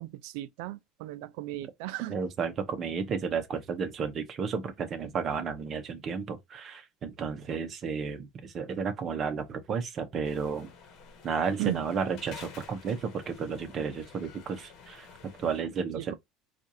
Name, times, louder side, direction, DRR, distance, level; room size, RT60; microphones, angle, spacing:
voice 1, 0.0-2.2 11.6-11.8 15.9-16.1, right 17 dB, 80° right, 0.4 m, -35 dB
voice 2, 2.1-10.7 11.2-15.1 15.4-16.1, right 6 dB, 35° right, 0.8 m, -32 dB
sound 1, 10.2-15.6, left 5 dB, 50° left, 1.1 m, -50 dB
4.3 x 2.5 x 2.7 m
cardioid pair, 135°, 0 cm